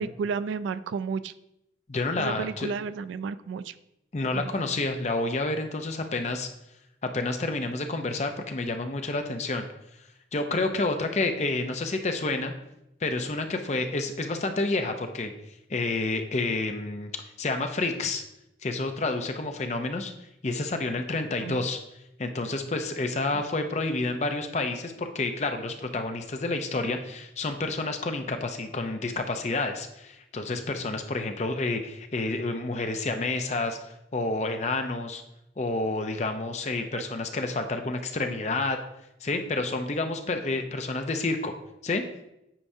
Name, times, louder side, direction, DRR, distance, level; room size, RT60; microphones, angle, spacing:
voice 1, 0.0-1.3 2.2-3.7 4.3-4.5 21.4-21.6 23.3-23.4, right 5 dB, 90° right, 15 dB, 0.3 m, -32 dB
voice 2, 1.9-2.7 4.1-6.5 7.0-9.6 10.3-12.5 13.0-15.3 15.7-17.1 17.4-18.2 18.6-20.1 20.4-21.8 22.2-35.2 35.6-38.8 39.2-41.5 41.8-42.0, left 2 dB, 40° left, 6 dB, 0.5 m, -29 dB
8.7 x 4.7 x 2.7 m, 0.86 s
head